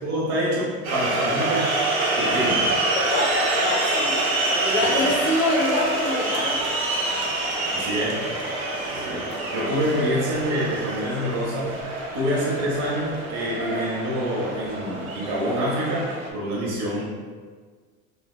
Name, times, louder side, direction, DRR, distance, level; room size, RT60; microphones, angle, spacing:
voice 1, 0.0-1.7 2.2-2.7 4.8-5.1 7.7-8.3 8.9-17.0, equal, 60° right, -5 dB, 1.1 m, -27 dB
sound 1, 0.8-16.3, right 2 dB, 85° right, 0.8 m, -26 dB
voice 2, 2.9-4.2 4.5-6.6, left 1 dB, 70° left, -5 dB, 1.3 m, -25 dB
3.6 x 3.3 x 2.3 m, 1.5 s
hypercardioid pair, 75°, 41 cm